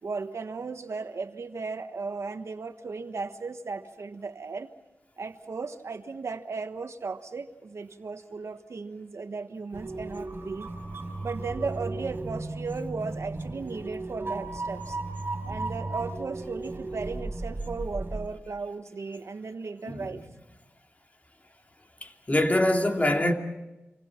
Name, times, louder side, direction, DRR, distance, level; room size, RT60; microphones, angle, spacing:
voice 1, 0.0-4.7 5.2-10.7 11.2-15.0 15.4-20.2, right 4 dB, 80° right, 1.3 m, -36 dB
sound 1, 9.7-18.3, right 2 dB, 50° right, 4.3 m, -35 dB
voice 2, 22.0-23.3, left 1 dB, 30° left, 2.7 m, -24 dB
28.0 x 25.0 x 5.9 m
wide cardioid pair, 60°, 5 cm